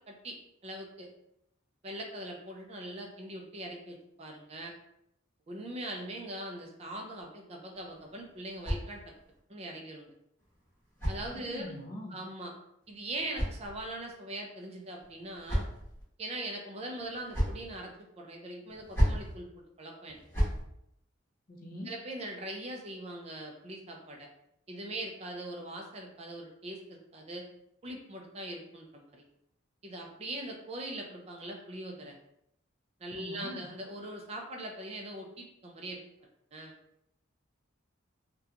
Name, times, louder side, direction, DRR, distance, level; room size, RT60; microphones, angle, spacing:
voice 1, 0.1-0.4 0.6-1.1 1.8-4.7 5.5-9.0 9.5-10.1 11.1-11.7 12.1-12.5 12.9-15.7 16.2-19.5 19.8-20.2 21.8-24.3 24.7-27.5 27.8-29.2 29.8-32.1 33.0-36.0 36.5-36.7, right 1 dB, 30° right, 1 dB, 0.3 m, -41 dB
sound 1, 7.7-9.4 10.4-11.8 12.8-14.2 15.0-16.0 17.0-17.7 18.7-19.3 20.1-20.6, equal, 10° left, 0.9 m, -34 dB
voice 2, 11.5-12.2 21.5-21.9 33.2-33.7, left 1 dB, 45° left, 0 dB, 0.4 m, -42 dB
2.8 x 2.2 x 2.4 m, 0.77 s
head